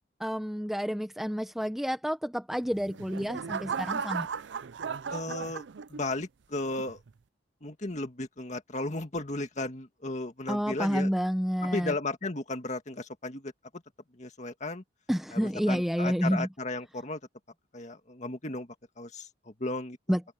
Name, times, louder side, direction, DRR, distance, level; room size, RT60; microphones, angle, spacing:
voice 1, 0.2-4.3 10.5-11.9 15.1-16.5 20.1-20.2, equal, ahead, 0.9 m, -29 dB
sound 1, 2.6-6.2 6.8-7.1, right 6 dB, 70° right, 0.5 m, -36 dB
voice 2, 5.1-5.6 5.9-7.0 7.6-11.1 11.6-13.5 14.2-14.8 15.3-17.2 17.7-18.7 19.0-20.0, left 2 dB, 40° left, 2.0 m, -35 dB
head